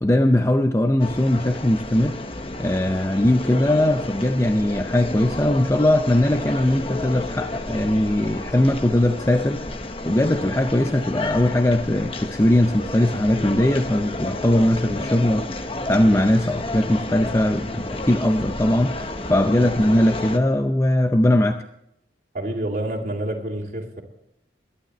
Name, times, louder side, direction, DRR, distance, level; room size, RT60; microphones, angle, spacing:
voice 1, 0.0-2.2 2.6-15.5 15.9-21.6, left 1 dB, 15° left, 0.5 m, -20 dB
sound 1, 1.0-20.4, left 2 dB, 30° left, 1.0 m, -31 dB
voice 2, 22.3-24.0, right 1 dB, 45° right, 2.6 m, -28 dB
22.5 x 11.5 x 3.1 m
head